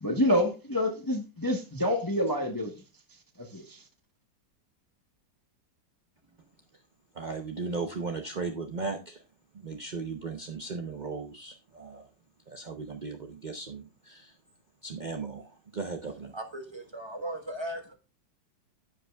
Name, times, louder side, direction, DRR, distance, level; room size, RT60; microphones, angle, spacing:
voice 1, 0.0-2.7 3.4-3.8, left 1 dB, 15° left, 0.8 m, -27 dB
voice 2, 7.1-9.2 9.5-12.0 12.5-14.3 14.8-16.3, right 4 dB, 55° right, 0.5 m, -37 dB
voice 3, 16.3-17.9, right 1 dB, 20° right, 1.0 m, -37 dB
15.0 x 5.3 x 2.3 m
omnidirectional pair, 2.0 m